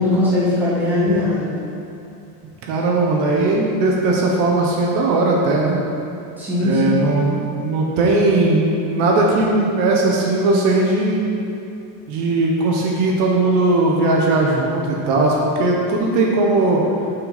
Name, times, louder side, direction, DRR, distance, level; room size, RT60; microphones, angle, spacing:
voice 1, 0.0-1.7 6.4-7.0, left 2 dB, 5° right, -10 dB, 1.9 m, -20 dB
voice 2, 2.7-5.8 6.6-11.2 12.1-16.8, right 2 dB, 65° right, -2 dB, 1.4 m, -18 dB
8.8 x 5.8 x 4.2 m, 2.7 s
cardioid pair, 170°, 48 cm